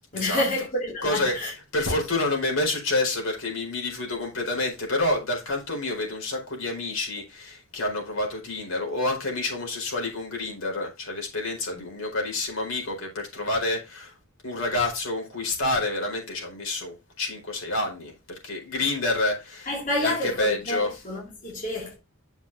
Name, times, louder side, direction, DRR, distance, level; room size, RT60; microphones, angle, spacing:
voice 1, 0.1-1.5 11.7-11.8 19.7-21.9, left 1 dB, 40° left, 2.4 m, -29 dB
voice 2, 1.0-1.3 1.7-14.1 14.4-19.7 20.0-20.1 20.4-20.9, left 2 dB, 85° left, 4.4 m, -28 dB
8.9 x 6.9 x 2.6 m
head